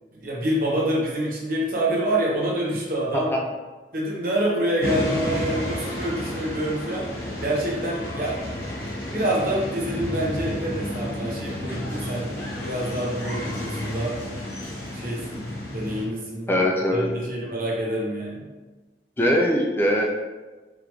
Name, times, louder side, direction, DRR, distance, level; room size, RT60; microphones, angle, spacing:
voice 1, 0.1-3.3 3.9-8.4 9.1-14.2 14.9-15.4 15.7-16.6 16.9-18.4, right 1 dB, 50° right, -4 dB, 1.0 m, -27 dB
sound 1, 4.8-16.0, left 1 dB, 55° left, 0.9 m, -31 dB
voice 2, 16.5-17.1 19.2-20.0, equal, 15° left, -1 dB, 0.4 m, -21 dB
4.8 x 2.5 x 3.0 m, 1.2 s
head